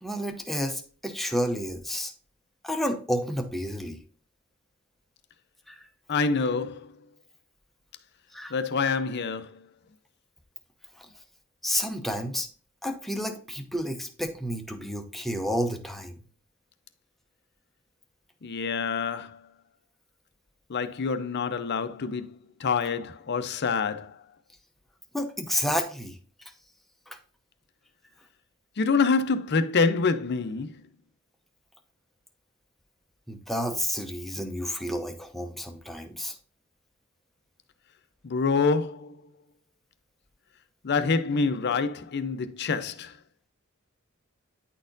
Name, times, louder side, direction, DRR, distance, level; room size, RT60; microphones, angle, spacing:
voice 1, 0.0-2.1 2.6-4.0 5.7-5.8 8.3-8.5 11.0-11.1 11.6-12.5 12.8-16.1 25.1-26.2 27.1-27.2 33.3-36.4, equal, ahead, 0.7 m, -30 dB
voice 2, 6.1-6.9 8.5-9.6 18.4-19.4 20.7-24.2 28.8-30.7 38.2-39.2 40.8-43.1, left 4 dB, 50° left, 0.5 m, -26 dB
9.7 x 4.2 x 2.6 m
head